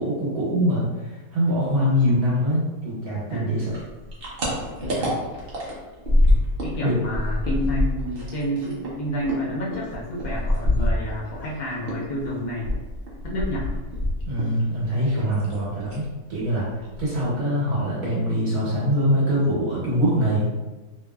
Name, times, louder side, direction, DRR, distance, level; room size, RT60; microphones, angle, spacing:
voice 1, 0.0-3.7 6.8-6.9 14.2-16.7 17.0-20.5, equal, 75° right, -7 dB, 1.4 m, -23 dB
voice 2, 1.6-2.0 3.3-3.6 4.8-5.1 6.6-12.7 13.2-13.7, equal, 70° left, -6 dB, 0.4 m, -30 dB
sound 1, 3.7-6.8 7.0-11.5 11.8-14.6 14.9-15.6 15.9-16.1 16.4-16.5 16.8-17.4, left 1 dB, 50° right, 0.7 m, -25 dB
2.8 x 2.6 x 2.2 m, 1.2 s
omnidirectional pair, 1.6 m